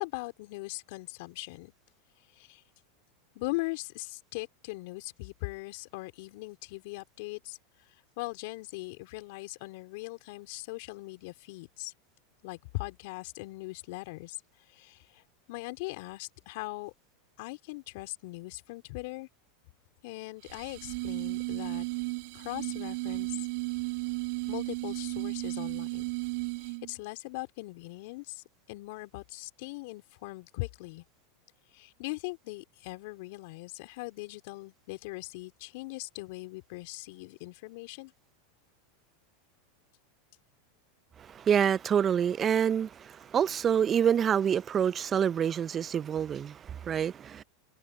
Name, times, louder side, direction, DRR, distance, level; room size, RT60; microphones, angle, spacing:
voice 1, 0.0-1.7 2.3-2.6 3.3-7.6 8.2-11.9 12.4-14.4 14.7-15.2 15.5-16.9 17.4-19.3 20.0-21.9 22.3-23.4 24.5-26.0 26.6-31.0 31.7-38.1, left 24 dB, 65° left, 4.0 m, -40 dB
sound 1, 20.4-26.9, right 29 dB, 65° right, 1.8 m, -34 dB
voice 2, 41.2-47.4, right 8 dB, 30° right, 0.7 m, -27 dB
hypercardioid pair, 95°, 0 cm